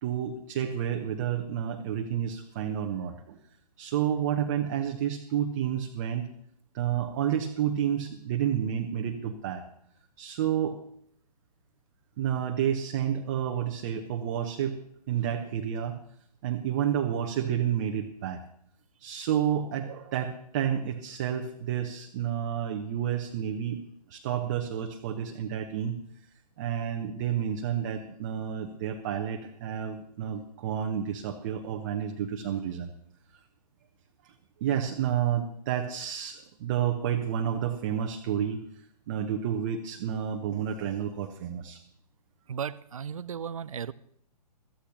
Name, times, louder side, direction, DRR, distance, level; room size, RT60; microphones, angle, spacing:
voice 1, 0.0-3.4 3.8-6.3 6.7-9.6 10.2-10.8 12.2-14.8 15.1-16.0 16.4-18.4 19.0-23.8 24.1-26.0 26.6-32.9 34.6-38.6 39.1-41.8, right 9 dB, 25° right, 3 dB, 0.9 m, -30 dB
voice 2, 42.5-43.9, right 7 dB, 55° right, 17 dB, 0.5 m, -35 dB
22.5 x 14.0 x 2.8 m, 0.69 s
figure-of-eight pair, 130°, 21 cm